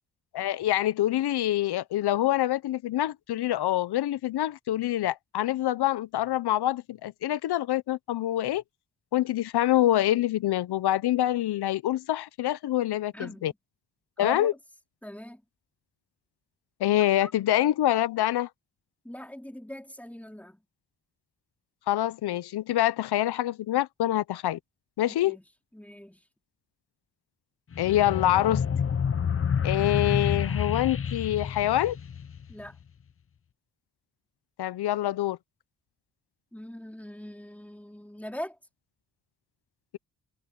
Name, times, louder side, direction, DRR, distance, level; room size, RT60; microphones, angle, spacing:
voice 1, 0.3-8.6 9.1-13.5 14.2-14.5 16.8-18.5 21.9-24.6 25.0-25.4 27.8-28.6 29.6-32.0 34.6-35.4, left 13 dB, 90° left, 0.6 m, -26 dB
voice 2, 13.1-13.5 14.2-14.5 15.0-15.4 16.9-17.3 19.0-20.6 25.1-25.4 25.7-26.2 32.5-32.8 36.5-38.6, equal, 5° left, 3.3 m, -41 dB
sound 1, 27.7-32.7, left 7 dB, 35° left, 0.6 m, -29 dB
cardioid pair, 75°, 38 cm